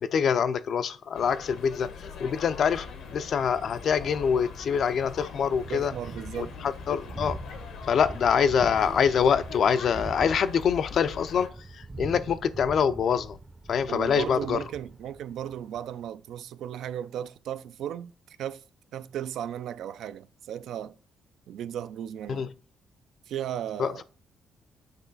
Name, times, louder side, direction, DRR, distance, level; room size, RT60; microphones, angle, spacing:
voice 1, 0.0-2.9 3.1-5.9 6.4-7.4 7.9-11.5 11.7-13.4 13.7-14.6 22.3-22.5 23.8-24.0, left 7 dB, 60° left, 0.4 m, -25 dB
sound 1, 1.1-11.5, left 6 dB, 80° left, 1.0 m, -43 dB
Thunder, 2.7-16.0, right 3 dB, 25° right, 0.5 m, -43 dB
voice 2, 5.7-6.5 13.9-18.6 18.9-21.0 21.5-22.5 23.3-24.0, right 10 dB, 75° right, 0.3 m, -35 dB
7.9 x 3.0 x 3.9 m
cardioid pair, 90°, 0 cm